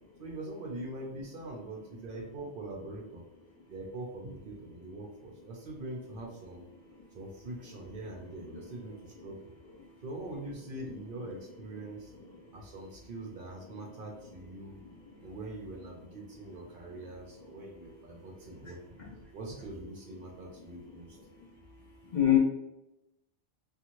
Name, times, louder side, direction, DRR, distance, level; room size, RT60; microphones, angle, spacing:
voice 1, 0.2-3.3 3.7-6.7 7.1-9.5 10.0-12.1 12.5-14.8 15.2-21.2, right 2 dB, 55° right, -1 dB, 0.7 m, -43 dB
voice 2, 8.5-8.9 9.2-9.3 9.8-9.9 12.1-12.5 13.7-13.8 14.7-15.3 16.8-17.4 18.1-18.4 18.6-19.1 20.9-21.5 21.8-22.4, left 12 dB, 50° left, -4 dB, 0.6 m, -33 dB
2.6 x 2.5 x 2.9 m, 0.90 s
omnidirectional pair, 1.2 m